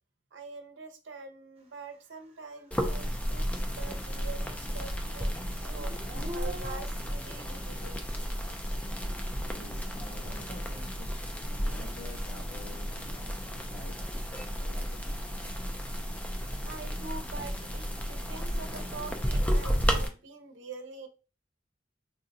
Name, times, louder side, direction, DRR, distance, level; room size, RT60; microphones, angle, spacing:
voice 1, 0.3-5.3 5.6-8.0 9.7-9.8 16.4-21.1, right 4 dB, 80° right, 4 dB, 0.6 m, -45 dB
Dog / Siren, 2.5-2.6 3.0-4.5 4.7-6.8, left 1 dB, 35° right, 0.8 m, -44 dB
sound 1, 2.7-20.1, equal, 10° left, 0.4 m, -33 dB
voice 2, 9.5-14.0 14.6-15.2, left 1 dB, 80° left, -5 dB, 1.0 m, -49 dB
3.6 x 2.2 x 2.6 m, 0.34 s
head